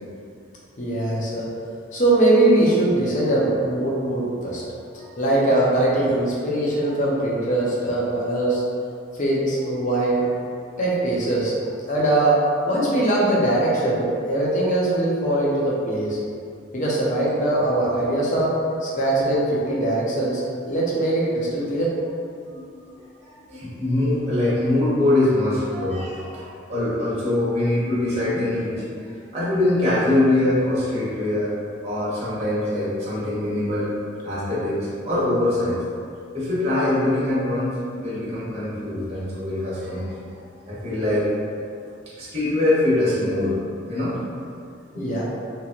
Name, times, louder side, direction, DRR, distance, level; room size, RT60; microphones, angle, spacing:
voice 1, 0.8-1.5 1.9-4.6 5.2-8.6 9.2-10.2 10.8-11.5 11.9-12.4 12.7-16.2 16.7-18.6 18.8-21.9 45.0-45.2, right 1 dB, 40° left, -5 dB, 0.6 m, -21 dB
voice 2, 22.5-22.8 23.2-31.5 31.8-33.9 34.2-35.8 36.3-40.1 40.6-41.3 42.2-43.6 43.9-44.2 44.9-45.1, left 1 dB, 35° right, -11 dB, 0.8 m, -23 dB
2.9 x 2.8 x 2.4 m, 2.4 s
head